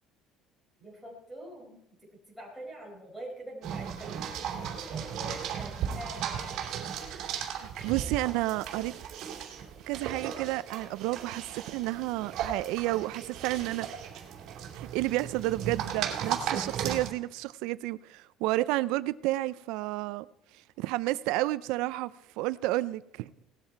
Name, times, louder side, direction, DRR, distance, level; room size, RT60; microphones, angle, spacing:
voice 1, 0.8-1.8 2.1-6.7, right 1 dB, ahead, 5.0 m, -45 dB
sound 1, 3.6-17.1, right 8 dB, 55° right, 2.8 m, -36 dB
voice 2, 7.3-8.9 9.9-14.0 14.7-20.3 20.5-22.1 22.4-23.3, right 18 dB, 85° right, 0.4 m, -31 dB
18.5 x 13.0 x 4.5 m
cardioid pair, 170°, 0 cm